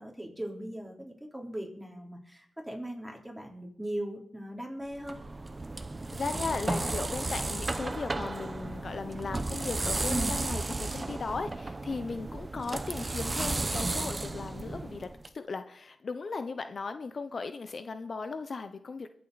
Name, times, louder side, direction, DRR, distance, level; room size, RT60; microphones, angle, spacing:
voice 1, 0.0-5.2 10.1-10.3, right 1 dB, 5° right, 0 dB, 3.9 m, -38 dB
sound 1, 4.9-15.3, right 2 dB, 30° right, 0.9 m, -34 dB
voice 2, 6.1-15.1 15.3-19.1, left 4 dB, 55° left, 9 dB, 0.8 m, -37 dB
22.5 x 7.9 x 4.1 m, 0.67 s
cardioid pair, 65°, 0 cm